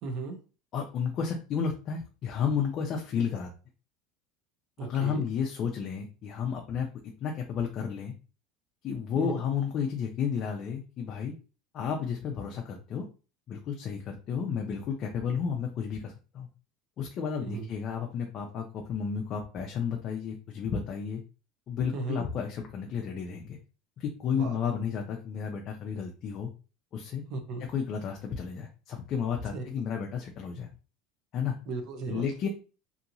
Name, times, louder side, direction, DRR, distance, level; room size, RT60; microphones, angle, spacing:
voice 1, 0.0-0.4 4.8-5.2 9.1-9.3 17.4-17.7 21.9-22.2 24.3-24.6 27.3-27.6 29.5-29.8 31.7-32.3, right 4 dB, 45° right, 5 dB, 0.7 m, -36 dB
voice 2, 0.7-3.5 4.8-6.9 7.2-8.1 8.8-11.3 11.7-13.0 13.5-16.5 17.0-21.2 21.7-23.6 24.0-26.5 26.9-27.2 27.7-30.7 31.3-31.5 32.1-32.5, left 7 dB, 35° left, 1 dB, 0.4 m, -32 dB
2.9 x 2.7 x 2.5 m, 0.34 s
cardioid pair, 165°, 0 cm